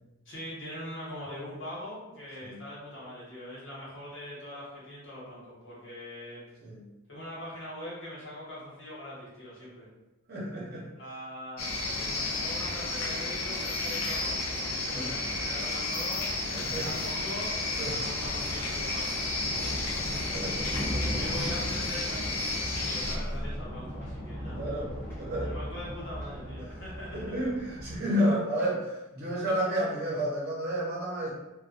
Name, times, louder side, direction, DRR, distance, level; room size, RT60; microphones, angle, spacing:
voice 1, 0.2-6.4 7.1-9.9 11.0-16.3 16.8-20.2 20.8-24.6 25.4-27.3, left 1 dB, 60° left, -7 dB, 1.1 m, -42 dB
voice 2, 10.3-10.8 14.9-15.1 16.5-16.9 17.8-17.9 20.3-20.7 24.4-24.9 25.2-25.5 26.6-26.7 27.1-31.3, equal, 50° right, -6 dB, 0.8 m, -31 dB
sound 1, 11.6-23.2, left 2 dB, 85° left, 0.4 m, -32 dB
Thunder, 16.9-28.0, equal, 10° left, 0.5 m, -37 dB
2.3 x 2.3 x 2.5 m, 0.99 s
head